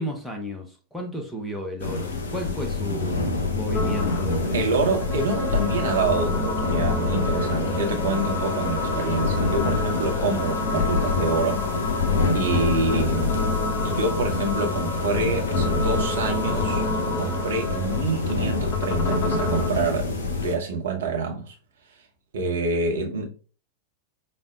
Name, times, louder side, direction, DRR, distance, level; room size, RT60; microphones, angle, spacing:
voice 1, 0.0-4.8, equal, 5° left, 0.7 m, -33 dB
sound 1, 1.8-20.5, left 3 dB, 70° left, 0.7 m, -26 dB
sound 2, 3.7-19.7, left 1 dB, 20° left, 1.0 m, -31 dB
voice 2, 4.5-11.7 12.3-13.5 13.8-16.8 17.2-21.5 22.3-23.3, right 3 dB, 60° right, 0.9 m, -27 dB
5.0 x 2.1 x 2.4 m
figure-of-eight pair, 90°, 0 cm